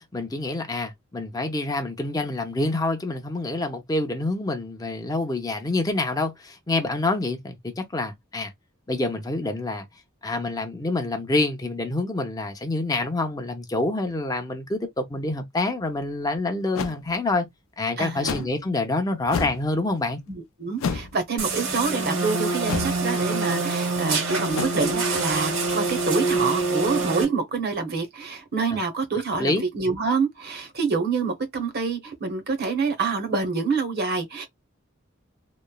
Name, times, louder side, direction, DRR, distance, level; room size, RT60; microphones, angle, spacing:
voice 1, 0.0-8.5 8.9-9.9 10.2-17.5 17.8-20.2 29.4-29.6, left 2 dB, 20° left, 0.5 m, -27 dB
sound 1, 16.7-17.0 18.3-18.5 19.2-19.6 20.8-21.2 22.7-23.0 24.5-24.7, left 5 dB, 90° left, 0.4 m, -28 dB
voice 2, 18.0-18.5 20.3-34.5, right 4 dB, 50° right, 0.8 m, -27 dB
sound 2, 21.4-27.2, right 3 dB, 80° right, 1.3 m, -25 dB
3.0 x 2.0 x 2.2 m
head